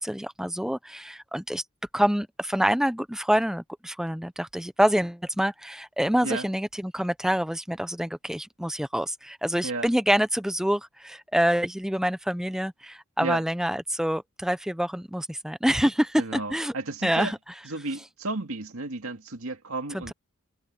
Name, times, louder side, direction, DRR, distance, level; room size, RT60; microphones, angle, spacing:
voice 1, 0.0-1.6 1.9-16.7 17.0-17.4 19.9-20.1, equal, ahead, 0.7 m, -26 dB
voice 2, 16.2-17.3 17.6-20.1, right 2 dB, 75° right, 2.2 m, -33 dB
head